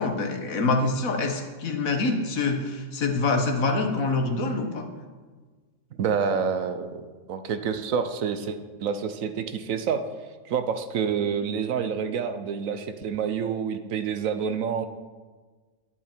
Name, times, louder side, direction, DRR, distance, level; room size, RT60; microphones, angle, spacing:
voice 1, 0.0-4.9, left 3 dB, 70° left, 5 dB, 1.6 m, -25 dB
voice 2, 5.9-10.0 10.4-14.9, right 6 dB, 70° right, 9 dB, 1.1 m, -28 dB
11.0 x 10.5 x 4.4 m, 1.4 s
omnidirectional pair, 1.5 m